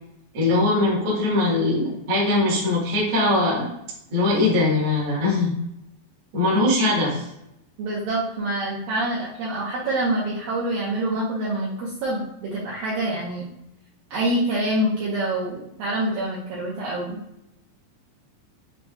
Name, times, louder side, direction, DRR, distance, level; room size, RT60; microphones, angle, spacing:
voice 1, 0.3-3.7 4.1-5.5 6.3-7.1, left 2 dB, 55° right, -6 dB, 1.6 m, -21 dB
voice 2, 7.8-13.4 14.1-17.2, right 1 dB, 75° right, -7 dB, 2.2 m, -26 dB
6.9 x 2.7 x 2.4 m, 0.82 s
omnidirectional pair, 5.0 m